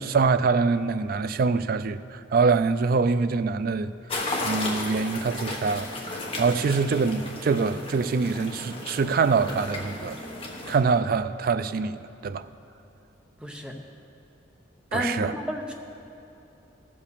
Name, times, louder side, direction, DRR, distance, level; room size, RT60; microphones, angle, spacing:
voice 1, 0.0-3.9 4.4-5.9 6.4-10.2 10.7-12.4 14.9-15.3, right 4 dB, 50° right, 0.3 m, -24 dB
sound 1, 4.1-10.8, left 2 dB, 30° left, 1.3 m, -34 dB
voice 2, 13.4-13.8 14.9-15.7, equal, 5° right, 0.7 m, -31 dB
14.5 x 5.3 x 6.8 m
head